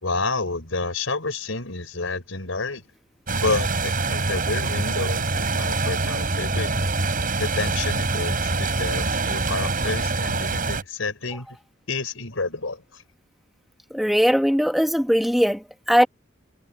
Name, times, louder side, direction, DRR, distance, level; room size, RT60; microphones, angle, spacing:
voice 1, 0.0-2.8 3.4-6.7 7.4-11.5 11.9-13.0, left 3 dB, 90° left, 4.6 m, -29 dB
sound 1, 3.3-10.8, right 3 dB, 45° right, 7.6 m, -25 dB
voice 2, 13.9-16.1, equal, ahead, 1.7 m, -20 dB
head